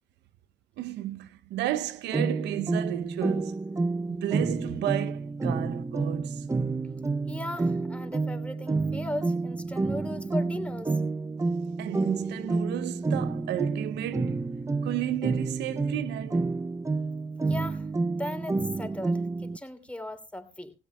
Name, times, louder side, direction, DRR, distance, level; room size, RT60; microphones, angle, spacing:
voice 1, 0.8-3.6 4.0-6.5 11.8-14.4 14.8-16.5, right 14 dB, 80° right, 0.6 m, -33 dB
sound 1, 2.1-19.6, right 3 dB, 15° right, 0.6 m, -29 dB
voice 2, 7.3-10.9 17.5-20.7, left 1 dB, 5° left, 3.0 m, -37 dB
17.0 x 16.5 x 2.2 m
supercardioid pair, 50°, 17 cm